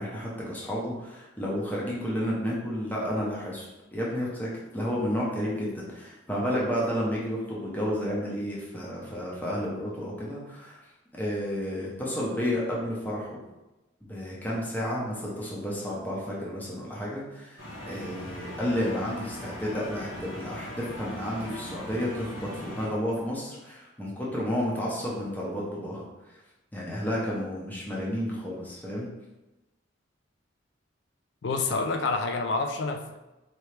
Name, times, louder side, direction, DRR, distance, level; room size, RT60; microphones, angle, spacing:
voice 1, 0.0-10.8 11.1-13.4 14.0-26.0 26.7-29.1, equal, 10° left, -5 dB, 0.8 m, -31 dB
sound 1, 17.6-22.9, equal, 85° left, 1.4 m, -40 dB
voice 2, 31.4-33.2, left 3 dB, 65° left, 6 dB, 0.4 m, -28 dB
4.3 x 3.0 x 3.2 m, 1.0 s
head